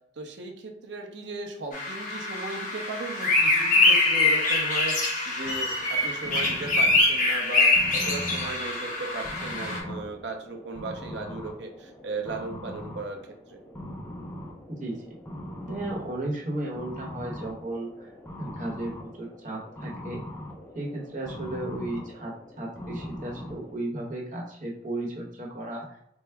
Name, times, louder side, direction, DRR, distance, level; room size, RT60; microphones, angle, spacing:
voice 1, 0.2-13.2 13.5-13.6, right 3 dB, 75° right, 3 dB, 0.7 m, -36 dB
sound 1, 1.7-9.8, left 2 dB, 45° left, 1.0 m, -24 dB
sound 2, 5.4-23.8, equal, 10° left, 0.4 m, -41 dB
voice 2, 14.7-15.0 15.7-18.1 18.4-20.2 20.7-25.8, right 1 dB, 45° right, -1 dB, 0.9 m, -34 dB
4.5 x 2.0 x 3.4 m, 0.75 s
head